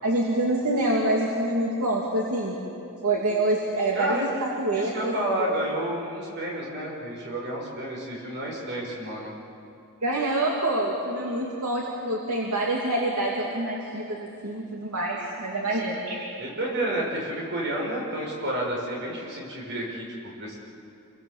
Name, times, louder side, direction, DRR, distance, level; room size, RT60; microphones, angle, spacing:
voice 1, 0.0-2.6 3.0-5.1 10.0-16.2, right 1 dB, 75° right, -3 dB, 2.8 m, -26 dB
voice 2, 3.9-4.3 4.7-9.3 15.6-15.8 16.4-20.6, right 1 dB, 55° right, -2 dB, 6.5 m, -30 dB
28.5 x 23.5 x 7.5 m, 2.7 s
head